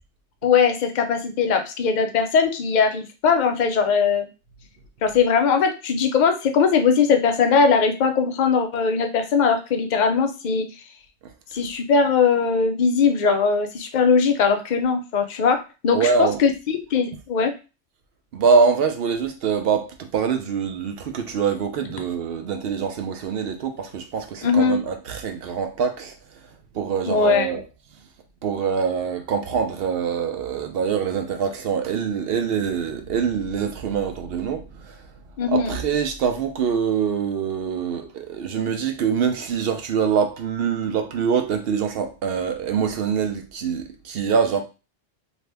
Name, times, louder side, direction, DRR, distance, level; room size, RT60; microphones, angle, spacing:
voice 1, 0.4-4.3 5.0-10.7 11.5-17.5 24.4-24.8 27.0-27.6 35.4-35.8, left 5 dB, 60° left, 0.5 m, -20 dB
voice 2, 15.9-16.4 18.3-26.1 26.7-27.6 28.4-35.1 35.5-44.6, right 6 dB, 65° right, 0.7 m, -24 dB
2.8 x 2.6 x 3.3 m
omnidirectional pair, 1.2 m